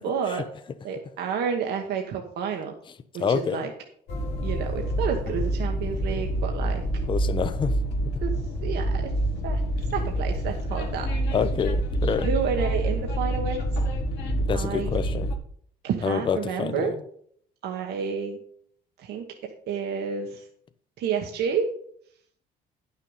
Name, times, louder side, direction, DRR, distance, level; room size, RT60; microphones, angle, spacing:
voice 1, 0.0-0.4 0.8-2.7 3.1-3.7 4.4-6.8 8.2-8.3 8.6-9.1 9.4-9.6 9.9-11.1 12.2-13.6 14.5-14.9 15.8-16.9 17.6-18.4 19.0-19.2 19.7-20.4 21.0-21.6, right 7 dB, 75° right, 1.3 m, -30 dB
voice 2, 3.2-3.6 7.1-7.7 11.3-12.3 14.5-15.3 16.0-16.9, left 6 dB, 30° left, 0.6 m, -27 dB
Train, 4.1-15.3, right 1 dB, 80° left, 1.7 m, -27 dB
10.0 x 6.4 x 5.5 m
cardioid pair, 110°, 17 cm